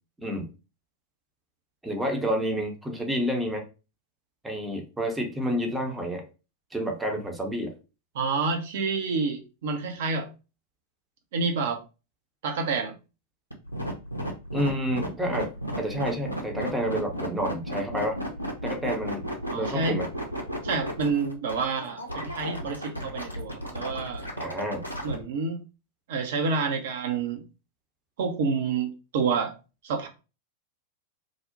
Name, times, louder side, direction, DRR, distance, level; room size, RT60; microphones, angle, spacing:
voice 1, 1.8-3.6 4.4-6.2 6.7-7.7 14.5-18.2 18.6-19.2 19.5-20.1 24.4-24.8, equal, 10° right, 0.6 m, -29 dB
voice 2, 8.1-10.3 11.3-11.8 12.4-13.0 19.5-20.0 20.6-24.2 25.0-25.6 26.1-27.4 28.2-29.5 29.8-30.1, right 4 dB, 55° right, 0.5 m, -28 dB
sound 1, 13.5-25.1, equal, 90° left, 0.5 m, -33 dB
2.6 x 2.0 x 2.5 m
figure-of-eight pair, 90°, 0 cm